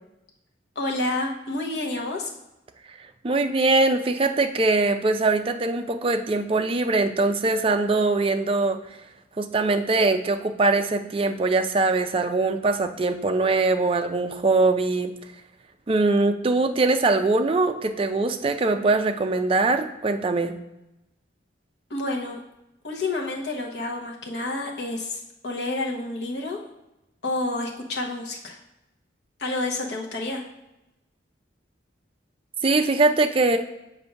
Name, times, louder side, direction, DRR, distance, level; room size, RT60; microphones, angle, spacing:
voice 1, 0.8-2.3 21.9-22.4 22.8-26.6 27.2-28.6 29.4-30.4, left 2 dB, 65° left, 0 dB, 0.9 m, -29 dB
voice 2, 3.2-8.8 9.4-15.1 15.9-20.6 32.6-33.6, right 3 dB, 30° right, 6 dB, 0.4 m, -22 dB
6.6 x 2.6 x 5.6 m, 0.91 s
head